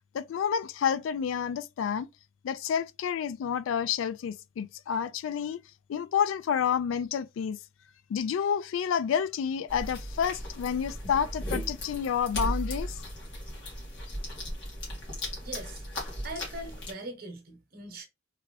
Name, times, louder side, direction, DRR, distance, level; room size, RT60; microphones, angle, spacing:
voice 1, 0.1-2.1 2.4-5.6 5.9-7.6 8.1-12.9, left 7 dB, 85° left, 0.3 m, -29 dB
sound 1, 9.7-16.9, equal, 65° left, 1.6 m, -36 dB
voice 2, 15.4-15.8 16.2-18.1, right 2 dB, 50° right, 0.9 m, -41 dB
3.4 x 2.4 x 3.2 m
head